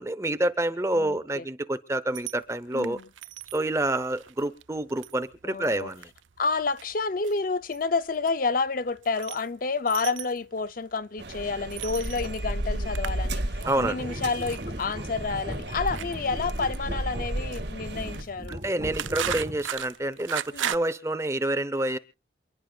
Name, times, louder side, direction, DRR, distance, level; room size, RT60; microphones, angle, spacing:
voice 1, 0.0-3.0 3.5-6.1 13.7-14.1 18.5-22.0, right 1 dB, 15° right, 0.8 m, -28 dB
voice 2, 0.9-1.4 2.7-3.0 5.5-5.9 6.4-18.6 20.5-20.7, left 4 dB, 45° left, 0.6 m, -29 dB
sound 1, 2.1-20.8, right 10 dB, 85° right, 0.6 m, -39 dB
sound 2, 11.2-18.2, right 1 dB, 65° right, 2.1 m, -33 dB
sound 3, 13.6-19.8, equal, 30° right, 2.1 m, -39 dB
28.0 x 11.0 x 2.4 m
head